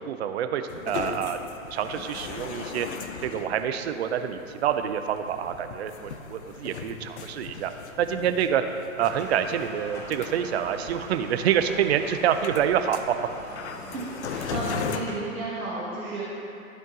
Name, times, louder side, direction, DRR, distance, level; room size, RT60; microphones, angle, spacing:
voice 1, 0.0-1.4 1.7-2.9 3.2-7.7 8.0-8.6 9.0-13.2, right 9 dB, 50° right, 8 dB, 0.5 m, -27 dB
sound 1, 0.7-15.0, left 6 dB, 50° left, 0.6 m, -38 dB
sound 2, 9.0-15.1, equal, 5° left, 1.3 m, -43 dB
voice 2, 13.9-16.3, right 2 dB, 80° right, -8 dB, 1.6 m, -33 dB
12.5 x 4.5 x 3.7 m, 2.9 s
figure-of-eight pair, 115°, 43 cm